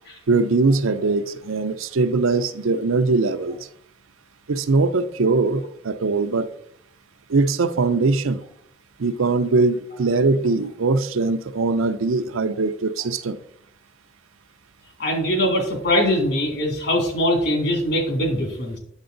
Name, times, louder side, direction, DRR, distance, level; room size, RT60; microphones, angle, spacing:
voice 1, 0.3-3.6 4.5-6.5 7.3-8.4 9.0-13.4, right 3 dB, 80° right, 0.6 m, -21 dB
voice 2, 15.0-18.8, equal, 55° left, 2.3 m, -22 dB
9.0 x 6.9 x 3.9 m
head